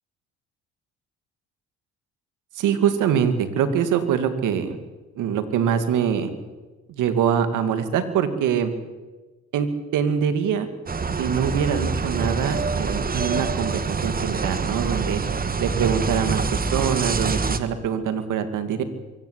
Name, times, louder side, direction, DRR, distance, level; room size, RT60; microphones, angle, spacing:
voice 1, 2.6-4.8 5.2-6.3 6.9-8.7 9.5-10.7 11.2-15.2 15.6-18.8, right 8 dB, 75° right, 10 dB, 2.6 m, -24 dB
sound 1, 10.9-17.6, right 4 dB, 30° right, 1.6 m, -25 dB
23.5 x 16.5 x 8.4 m, 1.2 s
supercardioid pair, 75°, 31 cm